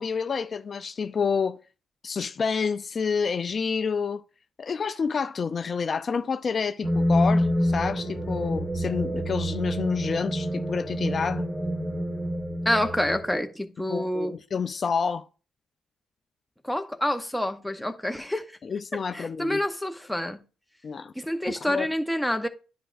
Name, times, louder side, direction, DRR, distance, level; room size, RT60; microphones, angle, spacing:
voice 1, 0.0-1.6 2.0-4.2 4.6-11.5 13.9-15.2 18.6-19.6 20.8-21.1 21.6-21.9, left 5 dB, 45° left, 0.4 m, -28 dB
sound 1, 6.8-13.4, equal, 15° right, 1.4 m, -27 dB
voice 2, 12.6-14.4 16.6-18.5 19.1-20.4 21.2-22.5, left 1 dB, 5° left, 0.8 m, -27 dB
10.0 x 4.9 x 2.5 m
cardioid pair, 90°, 0 cm